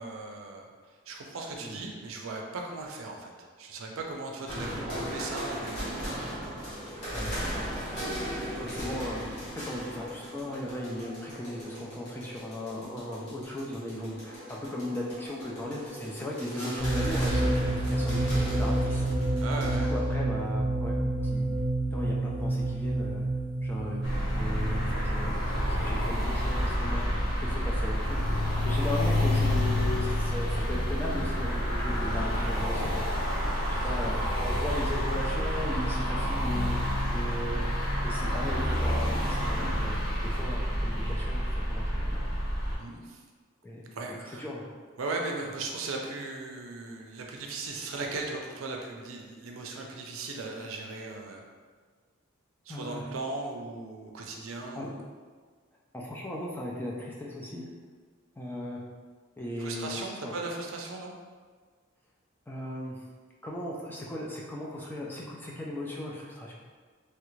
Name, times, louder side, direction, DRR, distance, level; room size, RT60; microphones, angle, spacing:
voice 1, 0.0-6.2 8.5-8.9 16.5-16.9 19.4-19.9 33.7-33.9 42.8-43.2 43.9-44.5 45.0-51.4 52.7-55.0 59.6-61.2, right 3 dB, 75° right, 1 dB, 0.5 m, -38 dB
sound 1, 4.5-20.2, equal, 50° left, 1.3 m, -38 dB
voice 2, 7.1-7.7 8.6-9.2 9.5-19.4 19.8-21.0 21.2-21.5 21.9-23.2 23.6-24.0 24.3-25.4 25.6-33.4 33.8-37.6 38.0-40.0 40.2-42.3 43.6-43.9 44.4-44.6 52.7-53.1 54.8-54.9 55.9-57.6 58.4-58.8 59.4-60.3 62.5-63.0 63.4-66.5, left 1 dB, 10° left, -3 dB, 0.3 m, -37 dB
sound 2, 16.8-26.4, right 1 dB, 30° left, 1.0 m, -29 dB
sound 3, 24.0-42.8, equal, 80° left, 1.0 m, -28 dB
3.2 x 2.4 x 3.1 m, 1.5 s
head